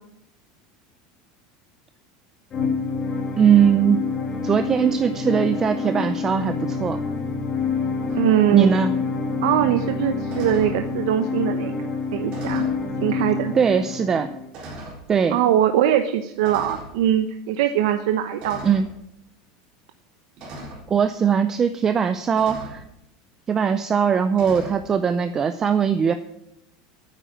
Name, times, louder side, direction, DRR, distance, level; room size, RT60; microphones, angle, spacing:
sound 1, 2.5-14.5, left 4 dB, 25° left, 2.1 m, -27 dB
voice 1, 3.4-4.0 4.4-7.0 8.5-8.9 13.5-14.3 15.1-15.4 18.6-18.9 20.9-22.8 23.5-26.1, right 7 dB, 20° right, 10 dB, 0.5 m, -20 dB
sound 2, 8.1-8.3 10.3-10.8 12.3-12.8 13.7-13.8 14.5-15.0 16.4-16.9 18.4-18.9 20.4-20.9 22.4-22.8 24.3-24.8, right 1 dB, 35° right, 4.0 m, -38 dB
voice 2, 8.1-8.7 9.4-11.7 12.1-12.7 13.0-13.5 15.3-18.6, right 11 dB, 70° right, 7 dB, 0.9 m, -21 dB
9.3 x 8.3 x 9.1 m, 0.79 s
supercardioid pair, 170°, 3 cm